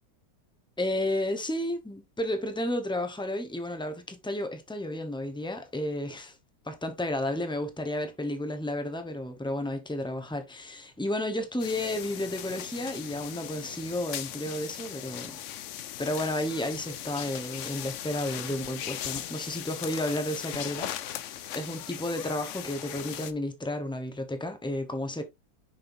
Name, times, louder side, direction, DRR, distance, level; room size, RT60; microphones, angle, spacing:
voice 1, 0.8-6.3 6.6-15.4 16.0-25.2, left 1 dB, 5° left, 0.5 m, -32 dB
sound 1, 11.6-23.3, left 11 dB, 85° left, 0.6 m, -39 dB
6.6 x 5.7 x 2.6 m
omnidirectional pair, 2.0 m